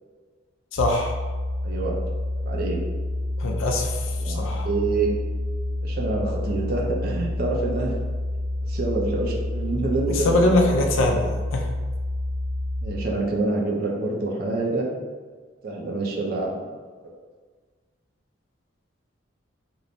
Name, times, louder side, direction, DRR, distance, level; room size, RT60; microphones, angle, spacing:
voice 1, 0.7-1.1 3.4-4.7 9.9-11.7, left 1 dB, 80° left, 2 dB, 0.4 m, -23 dB
sound 1, 0.8-12.9, left 1 dB, 30° left, 1.0 m, -28 dB
voice 2, 1.6-1.9 2.4-2.8 4.2-5.1 5.8-7.9 8.7-10.7 12.8-14.9 15.6-16.5, right 3 dB, 50° right, -2 dB, 0.4 m, -27 dB
2.9 x 2.1 x 2.5 m, 1.5 s
head